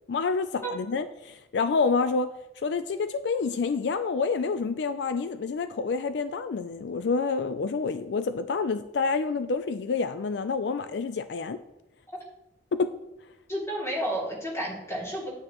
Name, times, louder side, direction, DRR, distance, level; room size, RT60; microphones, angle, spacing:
voice 1, 0.1-2.3 2.6-11.6 12.7-12.9, left 4 dB, 70° left, 11 dB, 0.4 m, -28 dB
voice 2, 13.5-15.3, right 1 dB, 15° left, -4 dB, 2.6 m, -31 dB
9.5 x 8.8 x 3.0 m, 0.91 s
head